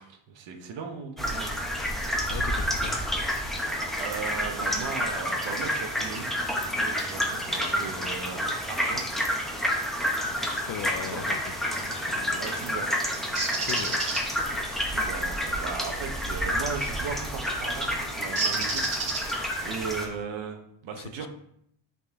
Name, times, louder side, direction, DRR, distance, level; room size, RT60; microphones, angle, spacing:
voice 1, 0.0-1.6 4.0-6.3 6.6-9.0 10.8-11.3 12.4-13.0 14.8-18.8 19.1-21.3, right 5 dB, 70° right, 4 dB, 1.2 m, -37 dB
sound 1, 1.2-20.1, equal, ahead, 0.8 m, -29 dB
voice 2, 2.3-3.0 10.6-12.4 13.6-14.0 14.5-14.7 20.9-21.3, left 10 dB, 45° left, 12 dB, 0.4 m, -39 dB
Bird, 13.4-14.2 16.8-17.1 18.4-19.6, right 4 dB, 40° right, 1.7 m, -29 dB
8.5 x 4.1 x 3.6 m, 0.73 s
cardioid pair, 165°, 47 cm